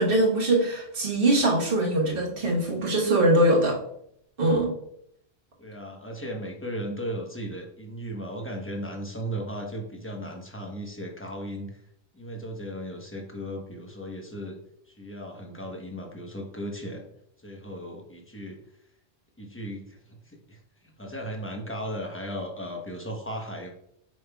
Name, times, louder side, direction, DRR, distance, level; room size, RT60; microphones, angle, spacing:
voice 1, 0.0-3.8 4.4-4.7, right 1 dB, 55° right, -1 dB, 1.4 m, -22 dB
voice 2, 5.6-11.8 12.1-14.6 14.9-17.0 17.4-18.6 19.4-20.6 21.0-23.7, equal, 10° left, 1 dB, 0.9 m, -36 dB
7.5 x 5.4 x 2.3 m, 0.73 s
omnidirectional pair, 1.1 m